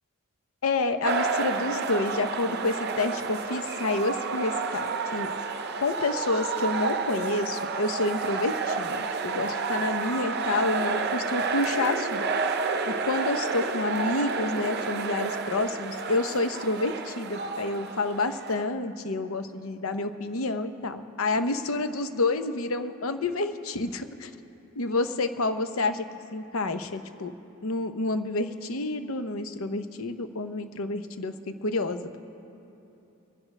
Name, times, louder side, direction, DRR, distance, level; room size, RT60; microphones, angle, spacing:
voice 1, 0.6-5.3 5.8-12.3 12.9-24.3 24.8-26.1 26.3-27.3 27.6-31.3 31.6-32.2, left 2 dB, 75° left, 9 dB, 0.7 m, -29 dB
sound 1, 1.0-18.6, right 4 dB, 50° right, 0.6 m, -30 dB
25.5 x 11.0 x 3.3 m, 3.0 s
head